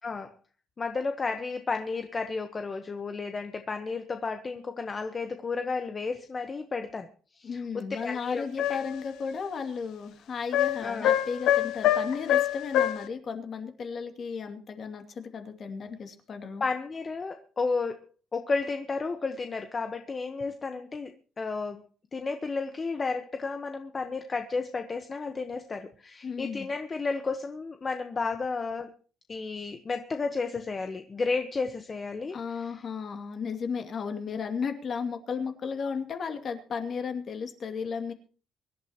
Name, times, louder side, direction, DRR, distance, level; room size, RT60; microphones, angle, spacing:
voice 1, 0.0-0.3 0.8-7.1 7.4-8.4 10.8-11.1 16.6-18.0 18.3-21.1 21.4-21.9 22.1-28.9 29.3-32.6, left 4 dB, 25° left, 7 dB, 1.1 m, -32 dB
voice 2, 7.4-16.6 26.2-26.7 32.3-38.1, left 5 dB, 40° left, 6 dB, 2.5 m, -34 dB
sound 1, 8.6-9.0 10.5-13.1, left 11 dB, 80° left, 1.1 m, -25 dB
24.5 x 12.0 x 3.0 m, 0.38 s
cardioid pair, 150°, 0 cm